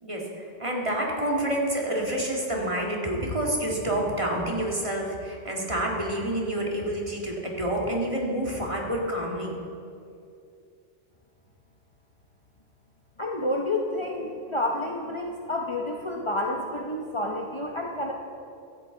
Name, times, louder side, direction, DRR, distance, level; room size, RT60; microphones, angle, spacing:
voice 1, 0.0-9.6, right 1 dB, 25° right, -2 dB, 2.1 m, -28 dB
voice 2, 13.2-18.1, left 1 dB, 30° left, 0 dB, 0.9 m, -29 dB
16.5 x 13.5 x 3.9 m, 2.6 s
omnidirectional pair, 1.2 m